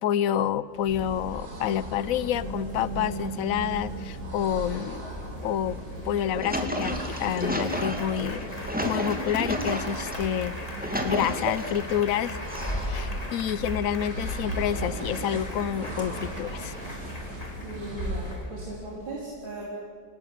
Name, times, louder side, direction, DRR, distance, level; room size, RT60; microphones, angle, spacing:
voice 1, 0.0-5.1 5.4-5.8 6.0-8.5 8.8-10.6 11.0-12.4 12.7-16.7, left 10 dB, 60° left, 17 dB, 0.9 m, -28 dB
sound 1, 0.7-18.5, right 1 dB, 50° right, 4.1 m, -37 dB
Applause, 2.0-19.0, equal, 20° left, 2.8 m, -41 dB
sound 2, 6.2-10.1 10.6-11.9 12.5-13.2, equal, 5° right, 2.6 m, -31 dB
voice 2, 17.6-19.6, right 2 dB, 80° right, -4 dB, 5.1 m, -38 dB
28.0 x 18.5 x 9.3 m, 2.1 s
omnidirectional pair, 2.1 m